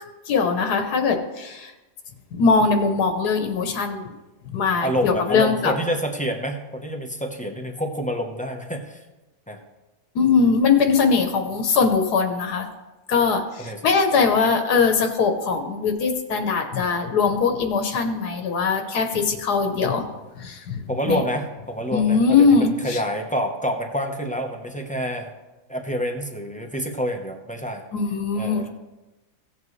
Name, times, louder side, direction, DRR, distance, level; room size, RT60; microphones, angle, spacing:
voice 1, 0.0-1.7 2.3-4.1 4.5-5.7 10.1-12.7 13.1-20.1 20.3-21.2 21.9-23.0 27.9-28.6, left 5 dB, 80° left, 5 dB, 1.5 m, -21 dB
voice 2, 4.8-9.0 9.5-9.6 13.6-13.8 20.9-25.3 25.7-27.8 28.3-28.7, equal, 5° left, 2 dB, 0.6 m, -27 dB
16.5 x 7.6 x 3.2 m, 1.1 s
omnidirectional pair, 1.7 m